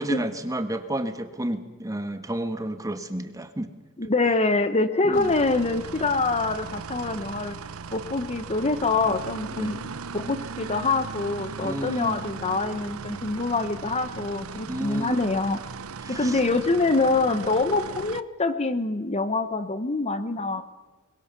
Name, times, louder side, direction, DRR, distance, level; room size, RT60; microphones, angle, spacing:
voice 1, 0.0-3.7 5.0-5.3 9.5-9.8 11.6-12.2 14.7-15.2 16.0-16.4 20.6-20.7, right 1 dB, 15° right, 8 dB, 1.5 m, -31 dB
voice 2, 4.0-7.6 7.9-9.8 10.1-15.6 16.1-20.6, left 3 dB, 30° left, 11 dB, 1.0 m, -25 dB
sound 1, 5.1-18.2, right 5 dB, 90° right, 0.8 m, -38 dB
24.0 x 21.5 x 6.9 m, 1.4 s
head